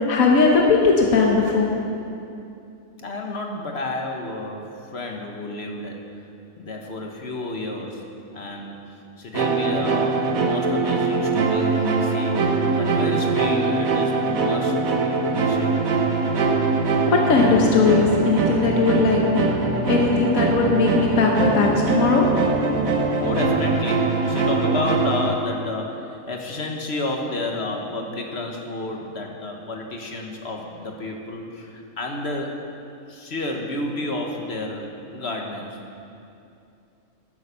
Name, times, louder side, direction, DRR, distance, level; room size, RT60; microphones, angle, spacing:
voice 1, 0.1-1.7 17.1-19.5 19.9-22.3, left 4 dB, 75° left, 0 dB, 1.5 m, -19 dB
voice 2, 3.0-6.0 6.6-8.0 8.3-8.8 9.2-15.7 22.8-32.5 33.1-35.8, left 2 dB, 50° left, 2 dB, 1.5 m, -31 dB
sound 1, 9.3-25.3, right 3 dB, 75° right, 1.6 m, -22 dB
11.5 x 9.5 x 6.9 m, 2.6 s
omnidirectional pair, 1.4 m